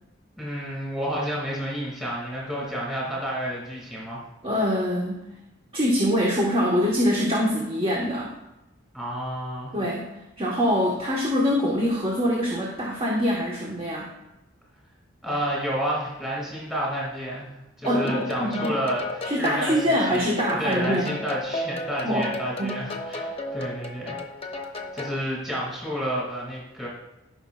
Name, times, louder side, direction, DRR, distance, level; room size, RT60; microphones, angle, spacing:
voice 1, 0.4-4.2 8.9-9.7 15.2-17.5 17.8-19.8 20.1-20.3 20.6-24.2 24.9-26.9, equal, ahead, -6 dB, 2.2 m, -30 dB
voice 2, 4.4-5.3 5.7-8.3 9.7-10.1 10.4-14.1 17.8-18.8 19.2-21.1 22.0-22.3 22.6-22.8, equal, 30° right, -3 dB, 1.3 m, -24 dB
sound 1, 17.8-25.2, left 2 dB, 30° left, 0.8 m, -34 dB
14.0 x 5.7 x 2.4 m, 0.93 s
head